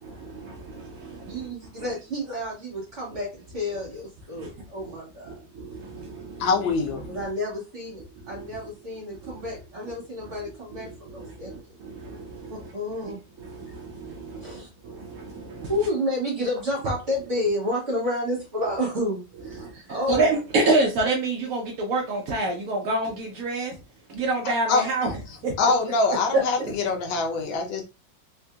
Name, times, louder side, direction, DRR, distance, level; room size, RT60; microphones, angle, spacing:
voice 1, 0.0-1.5 4.4-4.5 4.8-5.0 5.3-6.5 7.0-7.1 8.2-8.5 9.2-9.4 10.7-12.7 13.4-15.8 19.5-19.8 20.1-23.7 24.1-25.1 25.4-25.6 26.3-26.8, right 2 dB, 70° right, 0.8 m, -28 dB
voice 2, 1.2-5.4 7.1-11.5 12.5-13.2 14.4-14.7 15.7-20.7, left 1 dB, 40° right, 1.5 m, -30 dB
voice 3, 6.4-7.2 24.7-24.9 25.6-27.8, left 4 dB, 80° left, 1.5 m, -24 dB
3.6 x 2.6 x 2.3 m
omnidirectional pair, 2.1 m